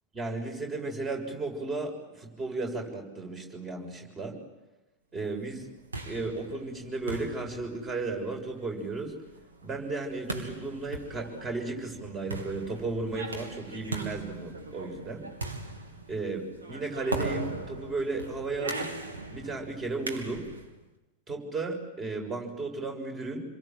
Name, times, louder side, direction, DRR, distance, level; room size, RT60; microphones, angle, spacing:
voice 1, 0.1-4.4 5.1-5.7 6.0-9.1 9.6-15.3 16.1-18.9 19.3-20.5 21.3-23.4, right 3 dB, 20° right, 3 dB, 6.8 m, -34 dB
sound 1, 5.6-20.7, right 2 dB, 75° right, 3.1 m, -39 dB
29.5 x 23.0 x 7.7 m, 1.1 s
figure-of-eight pair, 90°, 0 cm